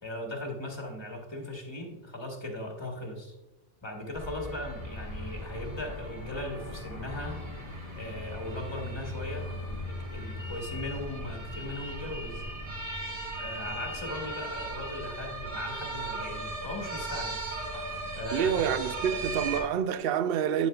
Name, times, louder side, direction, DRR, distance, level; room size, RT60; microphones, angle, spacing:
voice 1, 0.0-3.3 3.8-7.4 7.9-9.5 9.8-12.5 13.4-17.4 18.1-18.6, left 1 dB, 25° left, 1.3 m, -38 dB
sound 1, 4.1-19.6, right 1 dB, 25° right, 1.6 m, -37 dB
sound 2, 10.4-16.4, left 1 dB, 45° right, 1.6 m, -46 dB
voice 2, 18.3-20.7, right 8 dB, 65° right, 0.7 m, -27 dB
9.2 x 8.2 x 2.3 m
omnidirectional pair, 1.2 m